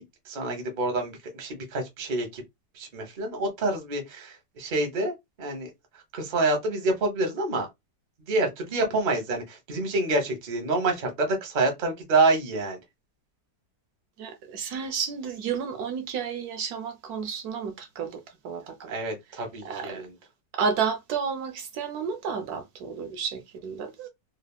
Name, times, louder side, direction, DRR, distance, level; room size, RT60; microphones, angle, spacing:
voice 1, 0.3-2.4 2.8-5.7 6.1-7.7 8.3-12.8 18.9-20.1, right 2 dB, 45° right, 0.6 m, -27 dB
voice 2, 14.2-19.0 19.3-20.0 20.5-24.1, right 6 dB, 70° right, 1.0 m, -32 dB
3.2 x 2.0 x 2.3 m
omnidirectional pair, 1.9 m